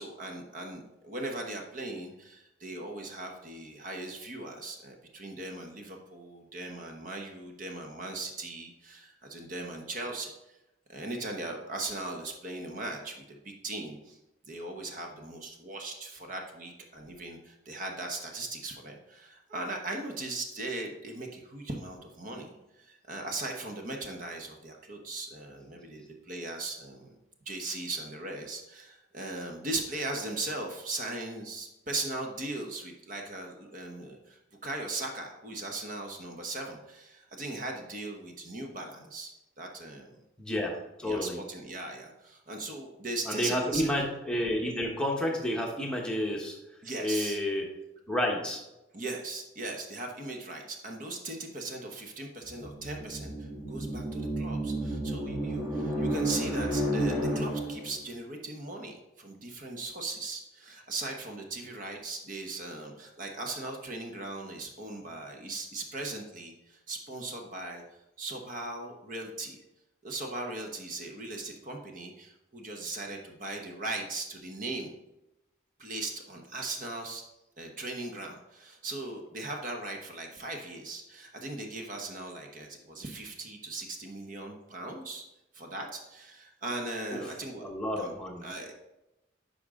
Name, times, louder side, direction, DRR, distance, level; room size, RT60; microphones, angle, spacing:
voice 1, 0.0-10.6 10.9-14.2 14.5-27.2 27.5-40.2 41.0-43.9 46.8-47.4 48.9-67.8 68.2-69.6 70.0-74.9 75.8-77.2 77.6-85.2 85.5-87.6 88.0-88.1 88.4-88.7, right 2 dB, 45° right, 2 dB, 1.0 m, -39 dB
voice 2, 40.4-41.4 43.3-46.6 47.0-47.7 48.1-48.6 87.6-88.4, left 1 dB, 5° left, -1 dB, 1.1 m, -30 dB
sound 1, 52.5-58.0, right 1 dB, 15° right, 1.2 m, -31 dB
9.9 x 5.3 x 3.7 m, 0.95 s
head